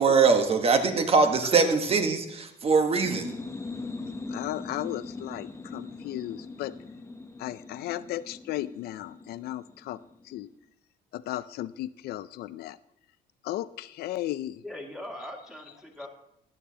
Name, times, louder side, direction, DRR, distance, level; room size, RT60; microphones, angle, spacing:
voice 1, 0.0-3.3, right 4 dB, 35° right, 6 dB, 1.2 m, -22 dB
sound 1, 2.9-10.4, left 3 dB, 15° left, 0.7 m, -41 dB
voice 2, 4.0-6.7 7.4-10.0 10.2-10.5 11.1-12.8 13.4-14.6, left 14 dB, 70° left, 16 dB, 0.4 m, -35 dB
voice 3, 14.6-16.1, left 1 dB, 5° right, 0 dB, 2.2 m, -40 dB
13.5 x 9.4 x 2.8 m, 0.78 s
cardioid pair, 110°, 17 cm